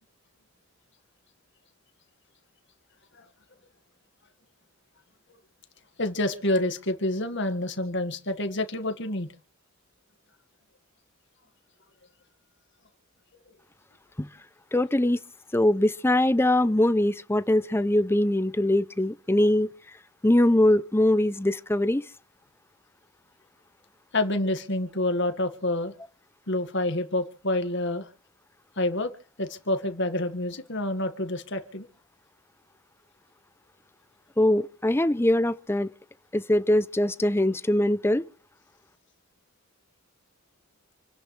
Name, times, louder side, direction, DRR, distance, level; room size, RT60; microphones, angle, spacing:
voice 1, 6.0-9.3 24.1-25.9 26.5-28.1 28.8-29.1 29.4-31.9, left 1 dB, 60° left, 2.0 m, -28 dB
voice 2, 14.7-15.2 15.5-19.7 20.2-22.0 34.4-35.9 36.3-38.2, left 1 dB, 10° left, 0.6 m, -22 dB
28.5 x 10.5 x 3.4 m
head